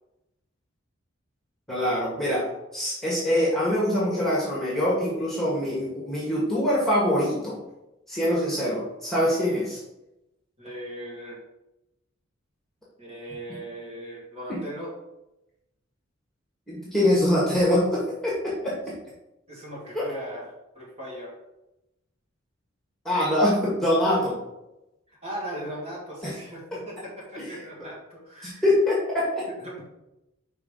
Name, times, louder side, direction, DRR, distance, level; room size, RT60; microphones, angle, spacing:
voice 1, 1.7-2.4 2.7-7.6 8.1-9.8 14.5-14.6 16.7-18.9 19.9-20.0 23.0-24.4 26.2-26.3 27.4-27.5 28.4-29.4, left 1 dB, ahead, -6 dB, 1.8 m, -24 dB
voice 2, 10.6-11.4 13.0-14.9 19.5-20.5 20.7-21.4 24.1-24.2 25.1-28.6 29.6-29.8, right 1 dB, 30° right, -5 dB, 2.4 m, -38 dB
5.1 x 4.8 x 5.0 m, 0.91 s
head